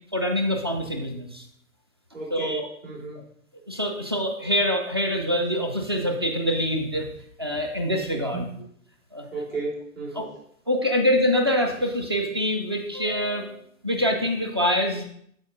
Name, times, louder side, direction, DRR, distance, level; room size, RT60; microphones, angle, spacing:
voice 1, 0.1-1.4 2.3-2.7 3.7-7.1 7.4-8.5 9.1-9.3 10.2-10.3 10.7-15.0, equal, 20° right, 3 dB, 0.4 m, -25 dB
voice 2, 2.1-3.2 8.3-8.6 9.3-10.3, right 3 dB, 65° right, -4 dB, 3.1 m, -34 dB
12.5 x 4.4 x 2.4 m, 0.66 s
figure-of-eight pair, 125°, 43 cm